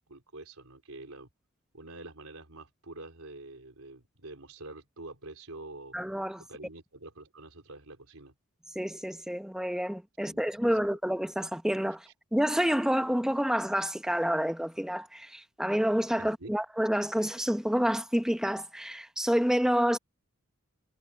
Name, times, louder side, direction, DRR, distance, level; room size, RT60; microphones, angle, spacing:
voice 1, 0.1-1.3 1.7-6.0 6.4-8.3 10.2-10.9 16.2-16.5, right 2 dB, 80° right, 3.8 m, -46 dB
voice 2, 5.9-6.4 8.7-20.0, equal, 5° right, 0.9 m, -28 dB
head